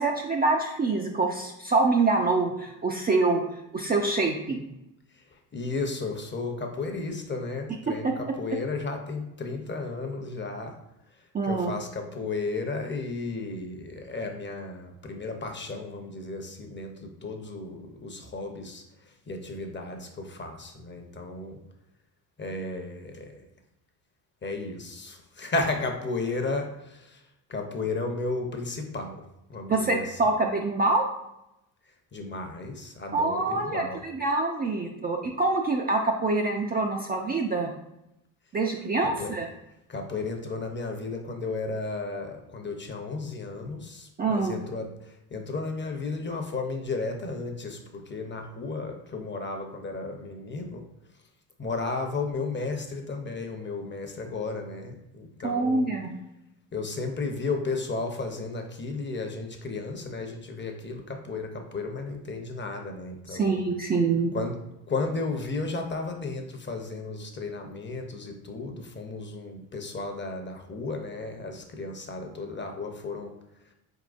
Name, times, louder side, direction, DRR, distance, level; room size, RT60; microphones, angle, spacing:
voice 1, 0.0-3.4 3.7-4.6 8.0-8.3 11.3-11.7 29.7-31.1 33.1-37.7 38.5-39.5 44.2-44.6 55.4-56.1 63.3-64.3, right 3 dB, 20° right, 0 dB, 0.4 m, -25 dB
voice 2, 5.5-10.8 11.4-18.8 19.3-21.6 22.4-23.4 24.4-27.2 27.5-29.2 29.5-30.2 32.1-34.0 39.0-39.3 39.9-50.9 51.6-55.9 56.7-63.6 64.3-64.6 64.9-73.3, left 3 dB, 25° left, 4 dB, 0.7 m, -34 dB
4.4 x 3.7 x 2.4 m, 0.86 s
supercardioid pair, 70°, 45 cm